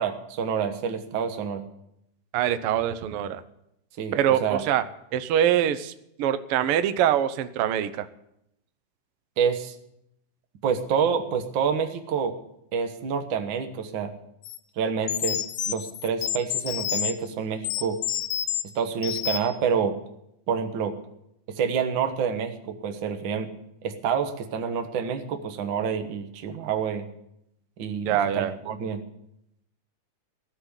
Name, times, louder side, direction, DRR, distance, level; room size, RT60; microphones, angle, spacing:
voice 1, 0.0-1.6 4.0-4.6 9.4-9.7 10.6-12.4 12.7-14.1 14.8-18.0 18.7-20.0 20.5-20.9 21.5-23.5 23.8-27.1 27.8-29.0, right 7 dB, 55° right, 6 dB, 1.4 m, -28 dB
voice 2, 2.3-3.4 4.1-4.8 5.1-5.9 6.2-8.1 28.1-28.5, right 10 dB, 85° right, 11 dB, 1.2 m, -24 dB
sound 1, 14.4-14.6 15.1-17.2 17.6-18.6 19.0-19.6, left 12 dB, 75° left, 2.0 m, -29 dB
16.5 x 6.1 x 9.7 m, 0.80 s
omnidirectional pair, 3.6 m